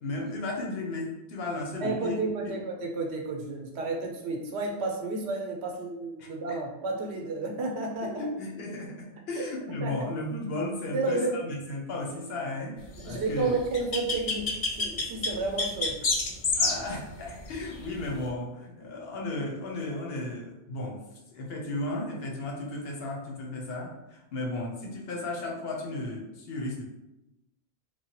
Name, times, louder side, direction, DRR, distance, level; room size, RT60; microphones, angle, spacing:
voice 1, 0.0-2.6 6.2-6.3 8.0-13.5 16.6-21.0 21.3-26.8, left 2 dB, 70° left, 0 dB, 0.9 m, -35 dB
voice 2, 1.8-8.2 9.3-9.4 9.8-9.9 10.9-11.3 13.0-16.0, right 3 dB, 90° right, 1 dB, 0.9 m, -31 dB
sound 1, 13.4-18.2, left 3 dB, 55° left, 0.4 m, -28 dB
3.2 x 2.2 x 2.9 m, 0.93 s
omnidirectional pair, 1.1 m